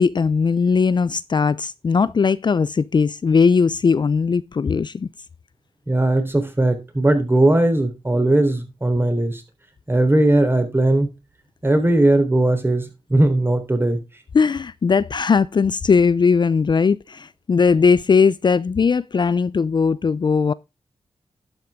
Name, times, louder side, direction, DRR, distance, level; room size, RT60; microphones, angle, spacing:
voice 1, 0.0-5.1 14.3-20.5, left 5 dB, 45° left, 0.5 m, -18 dB
voice 2, 5.9-9.4 9.9-11.1 11.6-14.0, right 1 dB, 20° right, 3.5 m, -18 dB
11.5 x 8.0 x 3.6 m
cardioid pair, 80°, 11 cm